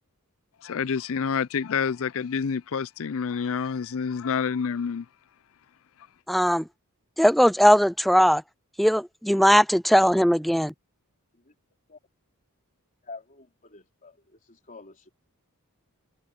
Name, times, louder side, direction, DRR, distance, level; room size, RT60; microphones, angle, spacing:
voice 1, 0.6-5.1, left 6 dB, 65° left, 0.5 m, -28 dB
voice 2, 6.3-6.6 7.2-8.4 8.8-10.7, equal, ahead, 0.3 m, -19 dB
voice 3, 13.0-15.1, left 3 dB, 35° left, 4.0 m, -47 dB
head